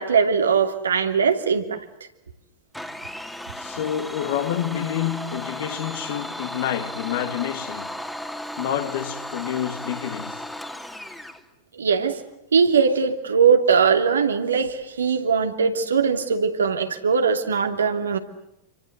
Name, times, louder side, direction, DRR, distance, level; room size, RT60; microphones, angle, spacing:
voice 1, 0.0-1.8 11.7-12.2 12.5-18.2, right 6 dB, 70° right, 2.8 m, -20 dB
Domestic sounds home sounds, 2.7-11.4, left 1 dB, 5° left, 2.6 m, -35 dB
voice 2, 3.6-8.0 8.6-10.5, left 10 dB, 55° left, 2.4 m, -28 dB
28.5 x 25.5 x 8.0 m
figure-of-eight pair, 90°, 0 cm